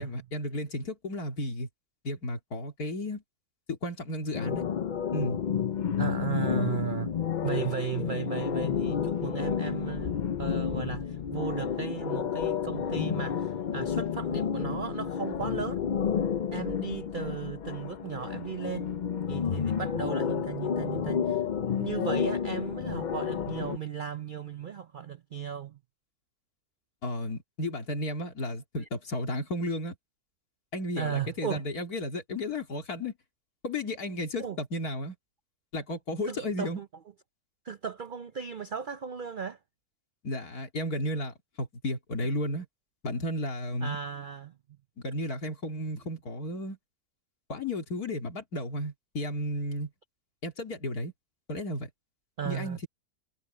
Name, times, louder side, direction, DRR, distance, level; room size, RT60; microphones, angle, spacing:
voice 1, 0.0-1.7 2.0-3.2 3.7-4.6 5.1-5.4 27.0-30.0 30.7-33.1 33.6-35.1 35.7-36.8 40.2-42.6 43.0-44.0 45.0-46.8 47.5-49.9 50.4-51.1 51.5-51.9 52.4-52.9, left 1 dB, 85° left, 3.2 m, -33 dB
sound 1, 4.3-23.8, left 8 dB, 60° left, 0.4 m, -31 dB
voice 2, 6.0-7.1 7.4-10.1 10.4-15.8 16.5-18.9 19.3-21.4 21.8-25.8 31.0-31.6 34.4-34.6 36.3-36.9 37.6-39.6 43.8-44.6 52.4-52.8, right 8 dB, 55° right, 0.5 m, -36 dB
omnidirectional pair, 1.6 m